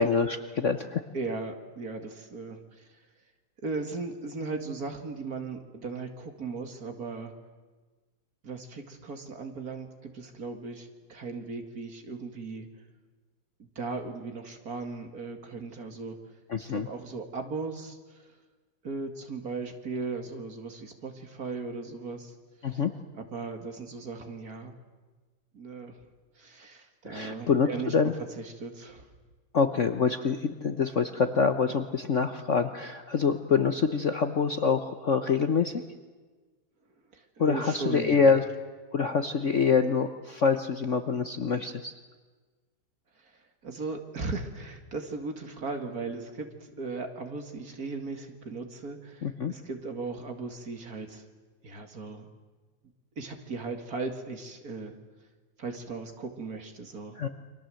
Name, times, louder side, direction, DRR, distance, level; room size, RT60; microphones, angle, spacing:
voice 1, 0.0-1.0 16.5-16.9 22.6-22.9 27.0-28.1 29.5-35.8 37.4-38.4 38.9-41.9 49.2-49.5 57.2-57.3, left 5 dB, 50° left, 8 dB, 1.0 m, -26 dB
voice 2, 1.1-3.0 3.6-7.3 8.4-12.7 13.8-16.2 16.7-18.3 18.8-22.4 22.6-22.8 23.1-24.7 25.5-26.0 26.4-27.9 28.4-29.1 37.1-38.4 43.2-51.3 51.6-52.3 53.2-54.9 55.6-57.2, right 3 dB, 45° right, 5 dB, 2.5 m, -37 dB
29.5 x 24.0 x 7.8 m, 1.4 s
omnidirectional pair, 2.2 m